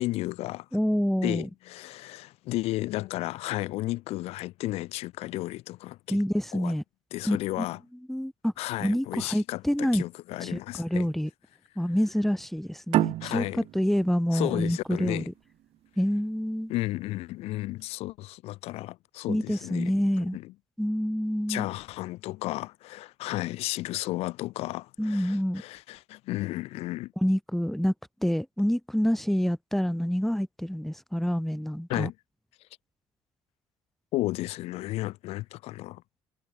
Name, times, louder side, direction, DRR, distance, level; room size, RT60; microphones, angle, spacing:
voice 1, 0.0-0.7 1.2-6.2 6.5-6.7 7.1-7.8 8.6-11.1 13.2-13.6 14.3-15.3 16.7-20.5 21.5-27.1 31.9-32.1 34.1-36.0, left 18 dB, 80° left, 1.9 m, -33 dB
voice 2, 0.7-1.5 6.1-6.8 7.2-7.6 8.1-8.5 8.8-10.0 10.4-11.3 11.8-13.4 13.7-15.2 16.0-16.7 19.3-20.4 20.8-21.7 25.0-25.6 27.2-27.9 28.2-32.1, equal, ahead, 4.3 m, -27 dB
sound 1, 12.9-16.1, right 15 dB, 70° right, 2.0 m, -30 dB
supercardioid pair, 75°, 10 cm